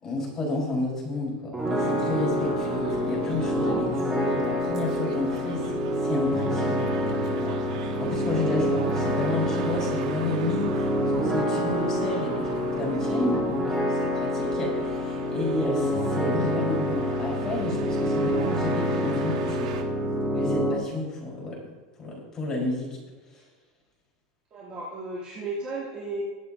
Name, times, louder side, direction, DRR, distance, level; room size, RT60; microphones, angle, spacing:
voice 1, 0.0-10.9 11.1-19.8 20.3-21.6 22.0-23.0 23.3-23.4, left 2 dB, 15° left, -4 dB, 4.3 m, -31 dB
sound 1, 1.5-20.7, equal, 10° right, 2.1 m, -27 dB
sound 2, 1.6-19.8, right 7 dB, 90° right, 1.5 m, -41 dB
voice 2, 24.5-26.2, right 2 dB, 30° right, -9 dB, 2.9 m, -34 dB
21.0 x 8.2 x 2.7 m, 1.3 s
supercardioid pair, 160°, 4 cm